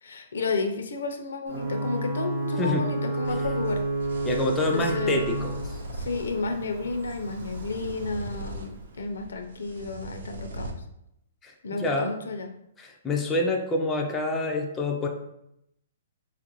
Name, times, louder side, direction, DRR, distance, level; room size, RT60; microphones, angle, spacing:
voice 1, 0.0-3.8 4.7-5.2 5.9-10.7 11.6-12.5, left 3 dB, 90° left, 5 dB, 0.5 m, -32 dB
Ocean / Boat Water vehicle / Alarm, 1.5-9.0, right 2 dB, 55° right, 0.9 m, -31 dB
sound 1, 3.2-10.7, right 1 dB, 75° right, 0.5 m, -40 dB
voice 2, 4.2-5.8 11.4-12.1 12.8-15.1, left 2 dB, 10° left, 0 dB, 0.3 m, -27 dB
4.5 x 2.5 x 2.9 m, 0.79 s
hypercardioid pair, 170°, 0 cm